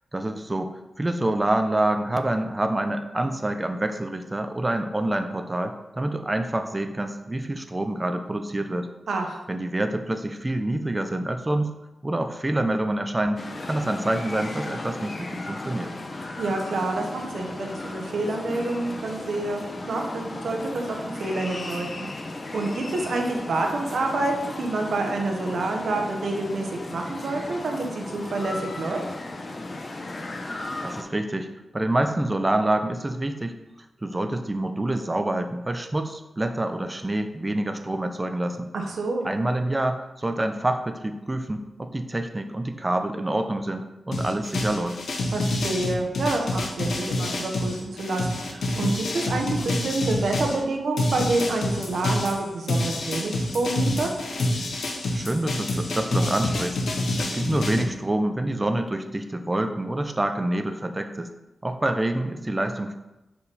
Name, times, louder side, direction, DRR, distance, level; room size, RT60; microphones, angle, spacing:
voice 1, 0.1-8.9 9.5-11.7 12.0-13.4 13.7-15.9 30.8-31.5 31.7-33.5 34.0-38.7 39.2-45.0 55.1-56.8 57.1-61.3 61.6-63.0, right 1 dB, 20° right, 7 dB, 0.6 m, -27 dB
voice 2, 9.1-9.4 16.4-22.1 22.5-29.0 38.7-39.3 45.3-54.1, right 2 dB, 75° right, 2 dB, 1.0 m, -28 dB
sound 1, 13.4-31.0, left 2 dB, 45° left, 0.8 m, -35 dB
sound 2, 44.1-50.6 51.0-57.8, left 1 dB, 75° left, 0.9 m, -27 dB
5.4 x 4.6 x 4.1 m, 1.0 s
cardioid pair, 80°, 0 cm